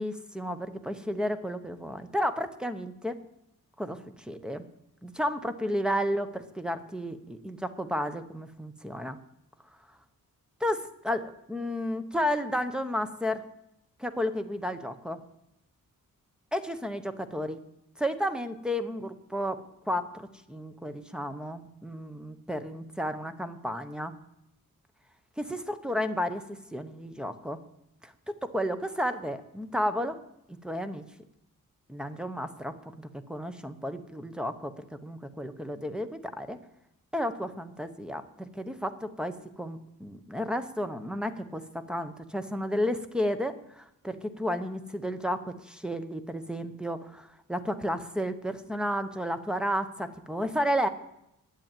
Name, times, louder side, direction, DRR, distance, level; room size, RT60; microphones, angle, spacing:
voice 1, 0.0-3.2 3.8-4.6 5.0-9.2 10.6-13.4 14.0-15.2 16.5-17.6 18.0-24.2 25.4-27.6 28.0-30.2 30.5-31.1 31.9-36.6 37.1-50.9, equal, ahead, 9 dB, 0.8 m, -32 dB
10.5 x 8.7 x 8.9 m, 0.83 s
wide cardioid pair, 160°, 33 cm